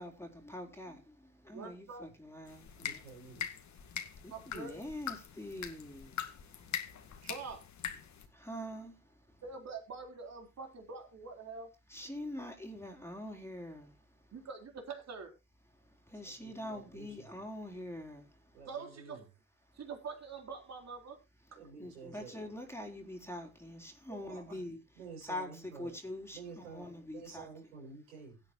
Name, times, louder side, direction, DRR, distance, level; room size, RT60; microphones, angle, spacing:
voice 1, 0.0-3.0 3.9-7.3 8.0-9.4 11.9-14.3 15.7-18.6 19.7-19.8 21.5-24.8 25.2-27.5, left 1 dB, 5° left, 3.8 m, -45 dB
voice 2, 1.5-2.1 4.3-4.9 7.2-7.6 9.4-11.7 14.3-15.3 18.7-19.2 19.7-21.2, right 4 dB, 45° right, 4.1 m, -45 dB
sound 1, 2.5-8.3, left 8 dB, 45° left, 2.0 m, -43 dB
voice 3, 2.8-3.5 3.8-3.9 6.6-6.7 16.2-17.3 18.5-19.2 21.5-22.4 24.1-24.6 24.9-25.9 26.3-28.4, right 4 dB, 90° right, 6.3 m, -51 dB
16.5 x 9.2 x 3.1 m
hypercardioid pair, 65°, 38 cm